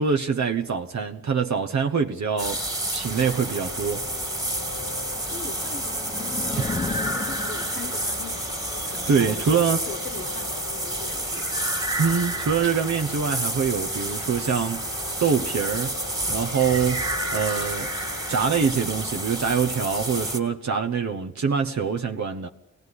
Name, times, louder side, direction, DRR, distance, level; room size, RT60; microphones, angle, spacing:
voice 1, 0.0-2.6 2.9-4.0 9.1-9.8 12.0-14.8 15.2-15.9 16.3-17.0 17.3-17.9 18.3-22.5, right 6 dB, 70° right, 1.2 m, -24 dB
sound 1, 2.4-20.4, right 1 dB, 15° right, 2.3 m, -30 dB
sound 2, 3.1-19.6, left 8 dB, 70° left, 1.2 m, -43 dB
voice 2, 5.2-6.6 7.0-11.6, left 5 dB, 40° left, 1.1 m, -41 dB
sound 3, 5.5-8.2, left 3 dB, 20° left, 0.8 m, -34 dB
24.0 x 18.0 x 9.8 m
wide cardioid pair, 145°, 29 cm